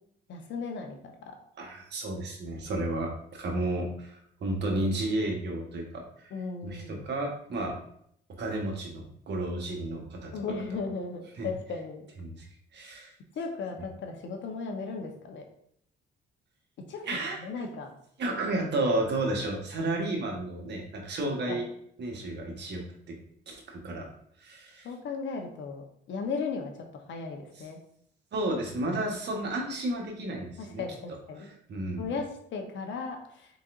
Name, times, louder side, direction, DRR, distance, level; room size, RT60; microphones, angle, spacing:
voice 1, 0.3-1.4 6.3-7.1 10.3-12.0 13.4-15.4 16.9-17.0 17.4-17.9 21.5-21.6 24.8-27.8 30.6-31.5 32.0-33.5, left 4 dB, 70° left, 3 dB, 0.9 m, -36 dB
voice 2, 1.6-6.3 6.6-7.8 8.4-10.3 11.4-11.5 12.2-12.4 12.7-13.1 17.0-17.4 18.2-21.7 22.0-23.1 23.5-24.1 24.4-24.9 28.3-30.8 31.4-32.1, right 1 dB, 60° right, 1 dB, 1.2 m, -32 dB
4.4 x 4.0 x 2.5 m, 0.68 s
cardioid pair, 90°, 20 cm